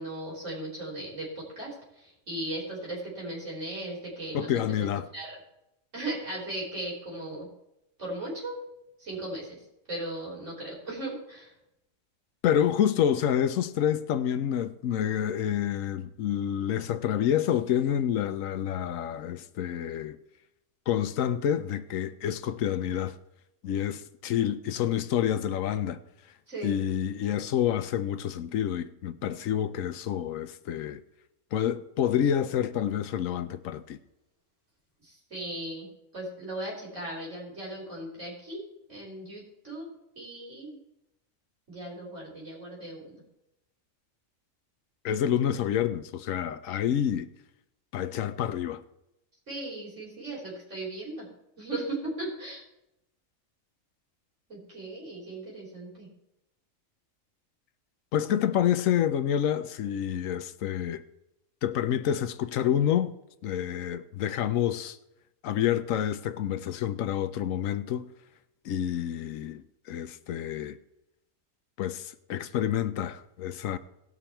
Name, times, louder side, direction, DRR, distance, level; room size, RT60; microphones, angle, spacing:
voice 1, 0.0-4.6 5.1-5.3 5.9-7.5 8.0-8.6 9.0-9.6 9.9-11.5 26.5-26.7 35.0-35.9 36.1-38.6 38.9-39.9 40.1-40.8 41.7-43.2 49.5-51.3 51.6-52.6 54.5-56.1, right 1 dB, 65° right, 5.1 m, -37 dB
voice 2, 4.3-5.1 12.4-20.2 20.9-23.2 23.6-26.0 26.6-31.0 31.5-34.0 45.0-47.3 47.9-48.8 58.1-61.0 61.6-63.1 63.4-65.0 65.4-68.1 68.6-70.8 71.8-73.8, left 10 dB, 80° left, 1.1 m, -28 dB
18.5 x 6.2 x 4.4 m
omnidirectional pair, 1.4 m